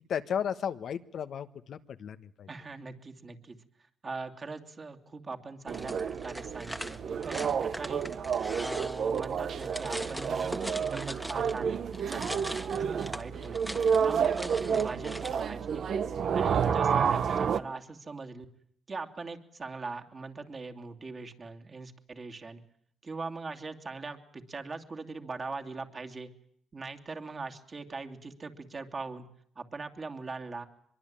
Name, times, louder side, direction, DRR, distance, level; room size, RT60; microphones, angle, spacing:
voice 1, 0.1-2.5 16.7-16.8, left 8 dB, 65° left, 10 dB, 1.2 m, -34 dB
voice 2, 2.5-3.6 4.0-8.1 8.4-15.9 16.3-18.5 18.9-22.6 23.0-26.3 26.7-29.3 29.6-30.6, right 3 dB, 35° right, 5 dB, 2.8 m, -41 dB
sound 1, 5.7-11.6 11.9-15.4, equal, ahead, 1.6 m, -41 dB
sound 2, 5.7-17.6, right 7 dB, 60° right, 1.1 m, -30 dB
23.5 x 22.5 x 8.9 m, 0.66 s
cardioid pair, 90°, 0 cm